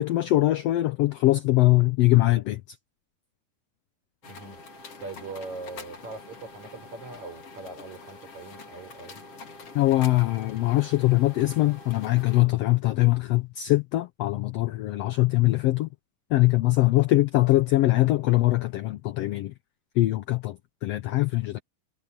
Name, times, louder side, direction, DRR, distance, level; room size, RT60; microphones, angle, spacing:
voice 1, 0.0-2.6 9.7-15.9 16.3-19.5 20.0-21.6, left 17 dB, 85° left, 1.4 m, -22 dB
sound 1, 4.2-12.4, left 3 dB, 50° left, 3.4 m, -45 dB
voice 2, 4.2-4.6 5.0-9.2, right 3 dB, 65° right, 7.3 m, -41 dB
omnidirectional pair, 3.6 m